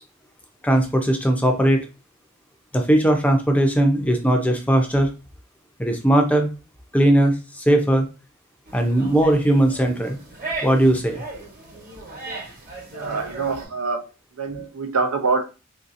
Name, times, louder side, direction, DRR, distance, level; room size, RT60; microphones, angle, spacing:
voice 1, 0.6-1.9 2.7-5.1 5.8-6.5 6.9-8.0 8.7-10.2 10.6-11.2, right 1 dB, 5° left, 3 dB, 0.5 m, -18 dB
sound 1, 8.7-13.7, right 3 dB, 40° right, 1.2 m, -36 dB
voice 2, 12.9-14.1 14.3-15.5, right 4 dB, 85° right, 5 dB, 0.6 m, -25 dB
3.7 x 2.7 x 2.5 m, 0.30 s
head